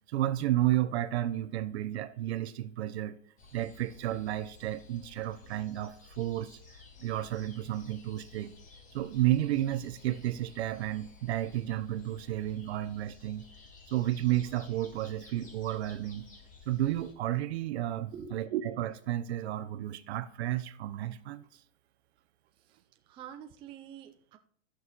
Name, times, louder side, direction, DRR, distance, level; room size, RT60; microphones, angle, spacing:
voice 1, 0.1-3.2 3.5-6.5 7.0-8.5 8.9-13.4 13.9-16.3 16.7-21.4, right 13 dB, 60° right, 0.9 m, -32 dB
sound 1, 3.4-17.1, left 4 dB, 20° left, 2.0 m, -54 dB
voice 2, 22.6-24.4, right 7 dB, 15° right, 0.5 m, -47 dB
14.0 x 6.4 x 4.1 m
hypercardioid pair, 145°, 38 cm